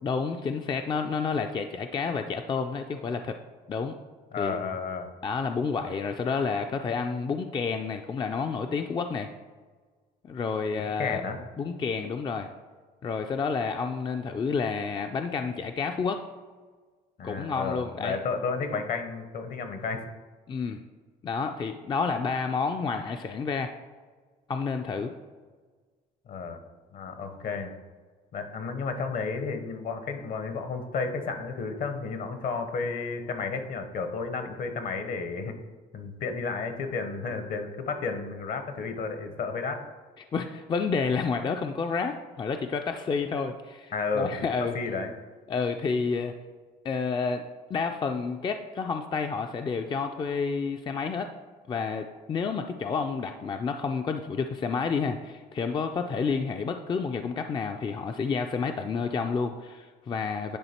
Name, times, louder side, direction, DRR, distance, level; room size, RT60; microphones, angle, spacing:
voice 1, 0.0-3.4 3.7-3.9 4.4-4.6 5.2-9.3 10.2-11.2 11.6-12.5 13.0-16.2 17.2-18.2 20.5-20.8 21.2-23.7 24.5-25.1 40.3-44.8 45.5-46.3 46.8-51.3 51.7-60.6, left 5 dB, 25° left, 5 dB, 0.4 m, -30 dB
voice 2, 4.3-5.1 10.7-11.4 17.2-20.0 26.3-26.6 26.9-27.7 28.3-35.6 35.9-39.9 43.9-44.5 44.7-45.1, left 4 dB, 60° left, 7 dB, 0.9 m, -32 dB
10.0 x 3.4 x 4.3 m, 1.4 s
cardioid pair, 110°, 17 cm